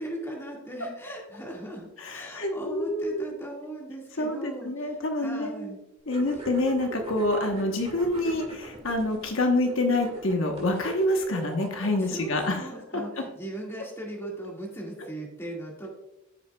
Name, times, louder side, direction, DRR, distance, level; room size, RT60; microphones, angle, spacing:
voice 1, 0.0-5.8 12.0-15.9, right 1 dB, 10° left, -2 dB, 1.8 m, -38 dB
voice 2, 2.0-3.2 4.2-5.7 6.1-12.6 12.9-13.0, left 1 dB, 65° left, 3 dB, 1.0 m, -27 dB
sound 1, 6.1-12.3, right 1 dB, 30° right, 1.7 m, -42 dB
14.5 x 5.7 x 2.3 m, 0.92 s
head